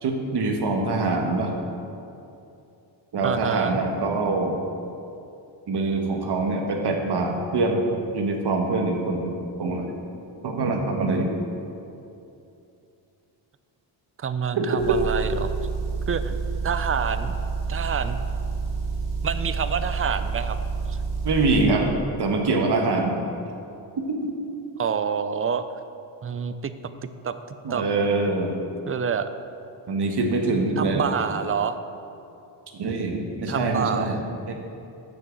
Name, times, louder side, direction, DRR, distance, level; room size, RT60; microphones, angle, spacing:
voice 1, 0.0-1.5 3.1-4.5 5.7-7.9 8.1-9.9 10.4-11.4 14.5-15.0 21.2-21.9 22.2-23.2 24.0-24.1 27.6-28.5 29.9-31.1 32.7-34.5, right 3 dB, 55° right, 2 dB, 1.4 m, -24 dB
voice 2, 3.2-3.8 14.2-15.5 16.1-16.4 16.6-17.4 17.7-18.2 19.2-20.6 20.9-21.0 24.8-25.6 26.2-26.7 27.0-27.8 28.9-29.3 30.8-31.8 33.5-34.1, right 7 dB, 30° right, 11 dB, 0.4 m, -27 dB
Motor vehicle (road) / Engine, 14.8-21.7, right 4 dB, 85° right, 1.8 m, -28 dB
6.8 x 6.1 x 7.5 m, 2.7 s
cardioid pair, 95°, 47 cm